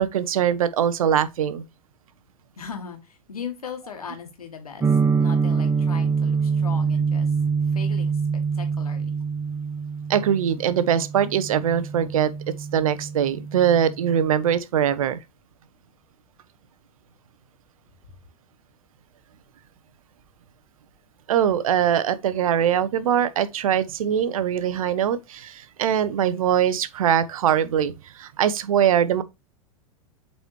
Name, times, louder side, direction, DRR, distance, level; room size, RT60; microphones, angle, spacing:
voice 1, 0.0-1.6 10.1-12.3 12.7-15.2 21.3-29.2, right 9 dB, 70° right, 0.8 m, -22 dB
voice 2, 2.6-7.4 7.6-9.1, left 6 dB, 85° left, 2.0 m, -38 dB
sound 1, 4.8-14.6, right 5 dB, 15° right, 0.9 m, -25 dB
8.0 x 4.2 x 3.1 m
hypercardioid pair, 95°, 18 cm